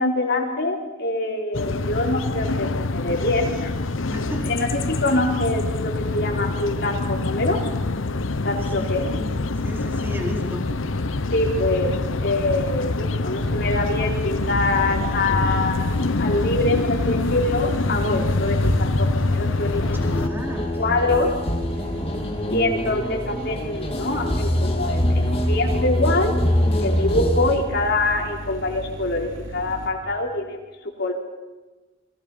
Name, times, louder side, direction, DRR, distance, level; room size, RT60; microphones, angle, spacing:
voice 1, 0.0-3.7 4.4-7.6 8.4-9.1 11.3-11.9 12.2-21.3 22.5-26.4 26.8-30.6 30.8-31.1, left 2 dB, 60° left, 0 dB, 4.1 m, -24 dB
sound 1, 1.5-20.3, left 2 dB, 85° left, 1.0 m, -25 dB
voice 2, 4.1-4.5 8.6-9.3 9.6-10.7 17.9-18.4 20.1-20.9 21.7-22.2, equal, 10° right, -1 dB, 4.3 m, -33 dB
sound 2, 13.4-29.9, right 1 dB, 75° right, 3.2 m, -36 dB
sound 3, 18.6-27.6, left 1 dB, 30° left, 2.8 m, -24 dB
29.5 x 24.0 x 5.7 m, 1.2 s
head